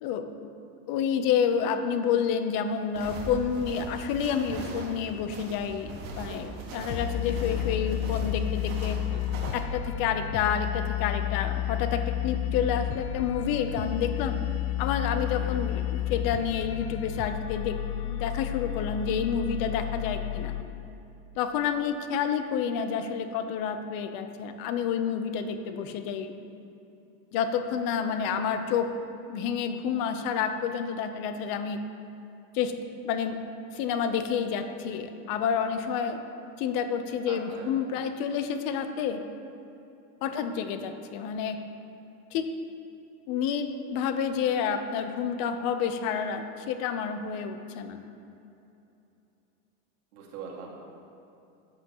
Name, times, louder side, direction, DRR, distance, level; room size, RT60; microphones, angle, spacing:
voice 1, 0.0-0.5 0.9-9.0 9.5-14.4 14.8-17.8 18.0-20.6 21.4-26.3 27.3-28.9 29.3-31.8 32.5-32.7 33.0-33.4 33.7-36.2 36.6-39.2 40.2-41.6 42.3-42.5 43.3-48.0, left 7 dB, 50° left, 8 dB, 0.8 m, -29 dB
sound 1, 2.9-9.6, right 2 dB, 50° right, 1.8 m, -40 dB
sound 2, 6.9-20.6, left 13 dB, 75° left, 0.5 m, -31 dB
voice 2, 37.3-37.8 40.2-40.3 50.1-50.7, right 5 dB, 80° right, -2 dB, 2.2 m, -42 dB
13.5 x 8.0 x 3.0 m, 2.8 s
supercardioid pair, 140°, 44 cm